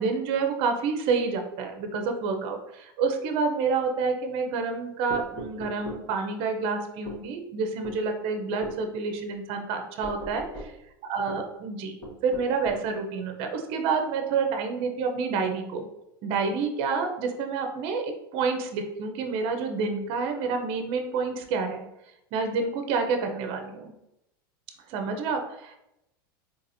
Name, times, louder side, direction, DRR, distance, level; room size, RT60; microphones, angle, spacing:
voice 1, 0.0-10.7 11.0-11.9 12.2-15.9 16.2-21.8 22.3-23.9 24.9-25.8, right 4 dB, 55° right, 5 dB, 0.6 m, -28 dB
sound 1, 5.1-6.1 7.1-7.2 7.8-8.0 8.6-8.8 10.0-10.8 12.0-12.9, equal, 40° left, 1.2 m, -39 dB
4.0 x 2.9 x 2.6 m, 0.87 s
hypercardioid pair, 105°, 12 cm